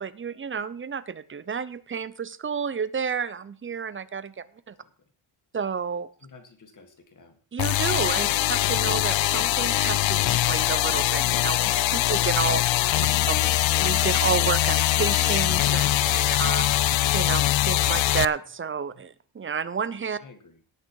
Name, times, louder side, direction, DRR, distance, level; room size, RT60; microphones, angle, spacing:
voice 1, 0.0-4.7 5.5-6.1 7.5-12.9 13.3-20.2, right 6 dB, 25° right, 16 dB, 0.6 m, -31 dB
voice 2, 6.2-7.4 18.9-19.0 20.2-20.6, left 4 dB, 40° left, 5 dB, 2.1 m, -52 dB
sound 1, 7.6-18.2, left 14 dB, 70° left, 0.6 m, -22 dB
18.0 x 6.4 x 4.6 m, 0.43 s
wide cardioid pair, 165°, 48 cm